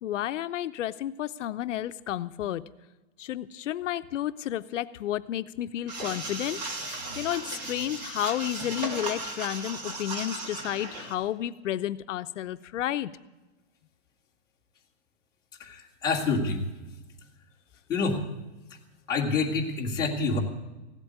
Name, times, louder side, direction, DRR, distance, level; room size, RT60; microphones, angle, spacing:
voice 1, 0.0-2.6 3.2-6.6 7.2-13.1, left 12 dB, 85° left, 12 dB, 0.6 m, -31 dB
sound 1, 5.9-11.1, right 2 dB, 35° right, 2.1 m, -36 dB
voice 2, 15.6-16.6 17.9-18.2 19.1-20.4, left 4 dB, 10° left, -4 dB, 1.7 m, -27 dB
15.5 x 8.3 x 9.5 m, 1.1 s
supercardioid pair, 175°, 36 cm